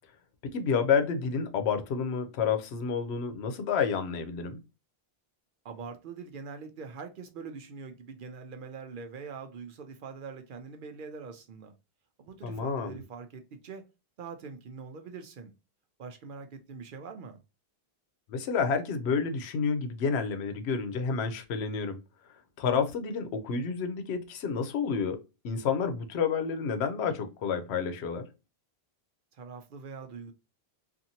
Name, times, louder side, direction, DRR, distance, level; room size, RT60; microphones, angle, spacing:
voice 1, 0.4-4.6 12.4-13.0 18.3-22.0 22.6-25.2 25.4-28.3, left 6 dB, 90° left, 0.9 m, -29 dB
voice 2, 5.6-11.7 12.2-13.8 14.2-15.5 16.0-17.4 29.3-30.3, right 5 dB, 60° right, 0.6 m, -43 dB
2.7 x 2.5 x 2.7 m
omnidirectional pair, 1.1 m